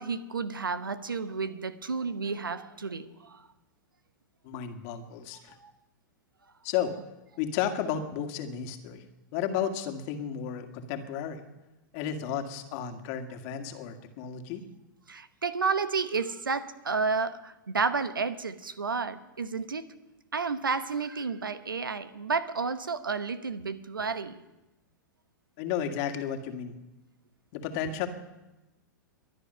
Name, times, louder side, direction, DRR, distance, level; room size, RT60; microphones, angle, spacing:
voice 1, 0.0-3.5 5.6-5.7 15.1-19.8 20.3-24.4, right 4 dB, 85° right, 13 dB, 1.0 m, -31 dB
voice 2, 4.4-5.6 6.6-6.9 7.4-9.0 9.3-11.4 11.9-14.6 25.6-26.8 27.5-28.1, left 9 dB, 45° left, 6 dB, 2.0 m, -33 dB
23.0 x 9.7 x 5.6 m, 1.0 s
figure-of-eight pair, 105°, 11 cm